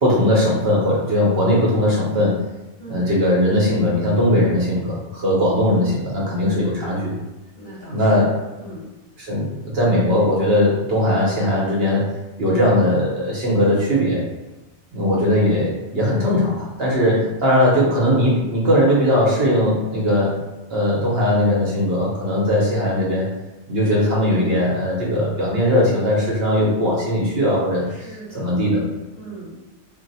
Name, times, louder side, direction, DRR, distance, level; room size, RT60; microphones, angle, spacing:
voice 1, 0.0-2.4 2.9-7.1 7.9-8.3 9.2-12.1 12.4-14.2 14.9-20.3 20.7-23.3 23.7-27.9 28.3-28.8, left 1 dB, 60° right, -5 dB, 0.9 m, -19 dB
voice 2, 2.8-3.1 7.5-8.3 8.6-8.8 16.9-17.3 27.9-28.7 29.1-29.6, right 2 dB, 40° left, -10 dB, 1.3 m, -38 dB
2.6 x 2.0 x 3.9 m, 1.1 s
omnidirectional pair, 1.2 m